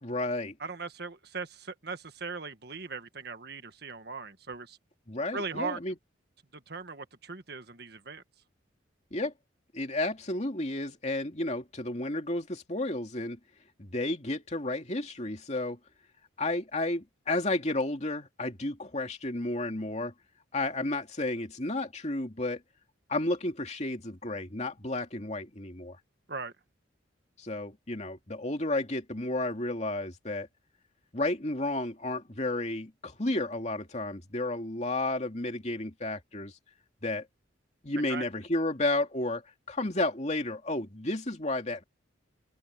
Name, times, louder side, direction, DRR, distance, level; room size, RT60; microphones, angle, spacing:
voice 1, 0.0-0.5 5.1-5.9 9.1-9.3 9.7-13.4 13.8-15.8 16.4-20.1 20.5-22.6 23.1-26.0 27.4-30.5 31.1-36.5 37.0-37.3 37.8-39.4 39.7-41.8, left 2 dB, 35° left, 2.6 m, -32 dB
voice 2, 0.6-4.8 5.3-5.8 6.5-8.2 26.3-26.5 38.0-38.2, right 4 dB, 55° right, 1.6 m, -39 dB
head